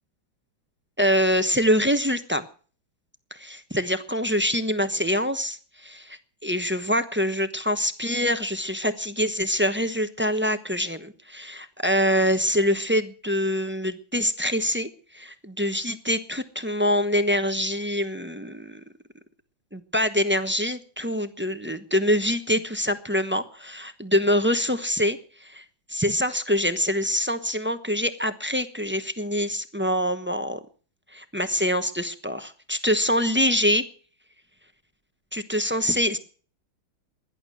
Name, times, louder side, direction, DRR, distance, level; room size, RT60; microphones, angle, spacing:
voice 1, 1.0-2.4 3.3-18.8 19.7-25.6 25.9-30.6 31.1-33.8 35.3-36.2, equal, 10° right, 9 dB, 0.6 m, -25 dB
17.5 x 11.0 x 6.3 m, 0.42 s
omnidirectional pair, 2.2 m